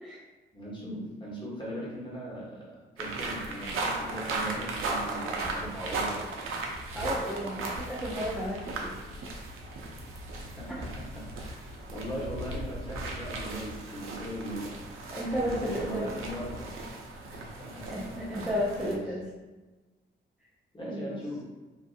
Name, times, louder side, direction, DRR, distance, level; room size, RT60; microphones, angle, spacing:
voice 1, 0.5-6.3 10.6-14.7 15.5-17.0 17.3-19.2 20.7-21.4, equal, 20° left, -6 dB, 1.1 m, -39 dB
sound 1, 3.0-18.9, right 2 dB, 85° right, 0.5 m, -36 dB
voice 2, 6.9-8.9 15.1-16.1 17.9-19.2 20.9-21.2, equal, 5° right, -6 dB, 0.4 m, -33 dB
2.5 x 2.5 x 2.5 m, 1.2 s
cardioid pair, 75°, 21 cm